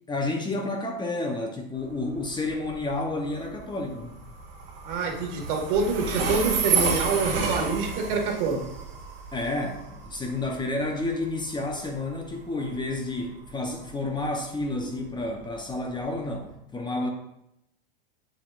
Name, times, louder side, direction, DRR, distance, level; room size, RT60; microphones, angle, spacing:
voice 1, 0.1-4.2 9.3-17.1, left 2 dB, 15° left, 2 dB, 0.9 m, -30 dB
Train, 1.8-16.5, right 5 dB, 85° right, 2.2 m, -32 dB
voice 2, 4.8-8.6, right 4 dB, 65° right, 1 dB, 1.9 m, -26 dB
7.8 x 6.4 x 2.5 m, 0.84 s
hypercardioid pair, 110°, 29 cm